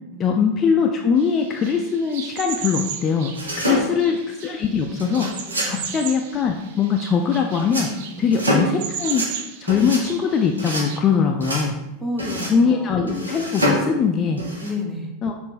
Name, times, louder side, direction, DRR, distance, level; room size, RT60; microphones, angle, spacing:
voice 1, 0.2-5.3 5.7-7.9 8.2-9.3 9.6-11.7 12.5-14.4 15.2-15.3, left 6 dB, 30° left, 3 dB, 0.4 m, -21 dB
sound 1, 1.2-11.0, right 7 dB, 55° right, 0.4 m, -35 dB
sound 2, 3.3-4.2 5.0-5.8 7.6-7.9 8.3-8.8 9.0-9.3 9.7-10.0 10.6-10.9 11.4-11.7 12.2-12.6 13.1-13.9 14.4-14.7, equal, 80° right, 0.9 m, -25 dB
voice 2, 12.0-13.0 14.6-15.1, left 1 dB, ahead, 1 dB, 0.8 m, -30 dB
6.5 x 2.6 x 3.1 m, 0.96 s
figure-of-eight pair, 85°, 0 cm